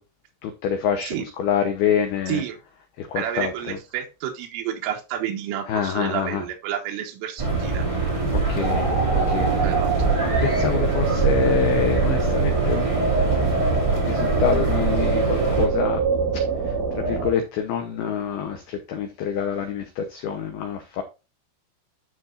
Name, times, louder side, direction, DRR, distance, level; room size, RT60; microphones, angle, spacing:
voice 1, 0.4-2.4 3.0-3.8 5.7-6.4 8.3-9.6 10.4-12.9 13.2-13.6 14.1-16.0 16.9-21.0, left 8 dB, 85° left, 2.2 m, -26 dB
voice 2, 2.3-2.6 3.2-7.9 9.6-9.9, right 10 dB, 75° right, 4.0 m, -30 dB
sound 1, 7.4-15.7, right 4 dB, 15° right, 1.0 m, -23 dB
sound 2, 8.6-17.3, right 4 dB, 40° right, 2.7 m, -25 dB
12.5 x 4.9 x 2.6 m
omnidirectional pair, 6.0 m